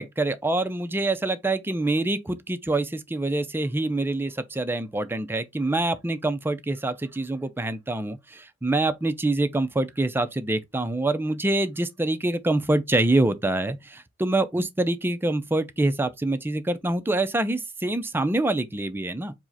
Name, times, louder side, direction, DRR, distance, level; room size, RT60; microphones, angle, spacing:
voice 1, 0.0-19.3, right 2 dB, 10° right, 0.4 m, -25 dB
4.8 x 2.1 x 4.0 m
head